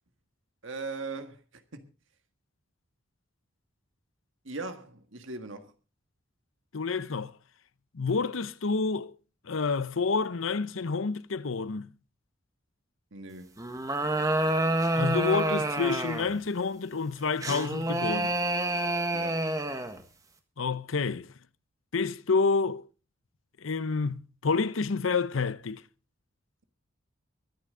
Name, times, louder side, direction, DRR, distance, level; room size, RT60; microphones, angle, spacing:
voice 1, 0.6-1.9 4.4-5.7 13.1-13.6 19.1-19.4, right 3 dB, 75° right, 1.7 m, -39 dB
voice 2, 6.7-7.3 7.9-9.1 9.5-11.9 14.9-18.4 20.6-21.3 21.9-22.9 23.6-25.8, left 4 dB, 85° left, 0.7 m, -29 dB
sound 1, 13.6-16.4 17.4-20.0, right 1 dB, 15° right, 1.5 m, -28 dB
23.0 x 10.0 x 3.7 m
head